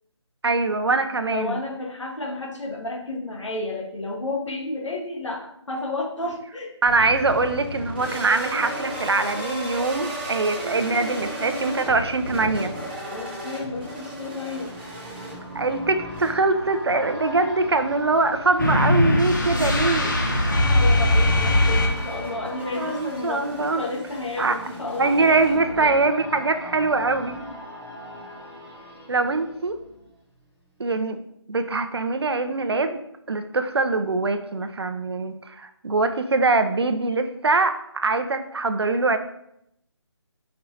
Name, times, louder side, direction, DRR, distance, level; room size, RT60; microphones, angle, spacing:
voice 1, 0.4-1.6 6.8-12.7 15.5-20.1 22.8-23.8 24.4-24.6 25.0-27.5 29.1-29.8 30.8-31.2 31.5-33.0 33.3-39.2, right 3 dB, 60° right, 9 dB, 0.6 m, -23 dB
voice 2, 1.2-6.7 13.1-14.7 20.6-25.9, left 2 dB, 80° left, 1 dB, 1.7 m, -32 dB
sound 1, 6.9-26.1, right 1 dB, 20° right, 1.8 m, -36 dB
sound 2, 13.3-30.4 30.8-30.9, equal, 5° left, 1.8 m, -41 dB
sound 3, 18.6-22.4, left 1 dB, 40° left, 1.0 m, -20 dB
5.4 x 4.4 x 4.0 m, 0.76 s
figure-of-eight pair, 175°, 15 cm